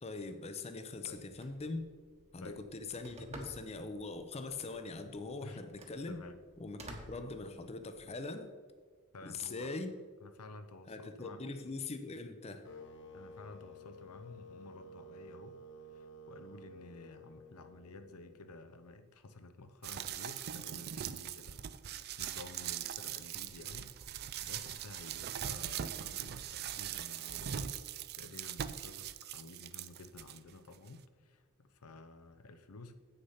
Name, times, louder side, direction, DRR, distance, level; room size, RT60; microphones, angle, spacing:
voice 1, 0.0-1.8 2.3-6.2 6.6-8.5 9.2-9.9 10.9-12.6, left 3 dB, 30° left, 8 dB, 0.6 m, -42 dB
Telephone, 1.1-8.1, right 1 dB, 30° right, 1.2 m, -54 dB
voice 2, 6.1-6.4 9.1-9.7 10.2-11.7 13.1-15.6 15.9-27.8 28.1-32.9, left 3 dB, 75° left, 9 dB, 0.7 m, -52 dB
sound 1, 12.6-18.7, equal, 55° left, 1.0 m, -53 dB
sound 2, 19.8-30.4 30.9-31.0, right 10 dB, 45° right, 0.4 m, -41 dB
8.2 x 6.6 x 5.6 m, 1.6 s
head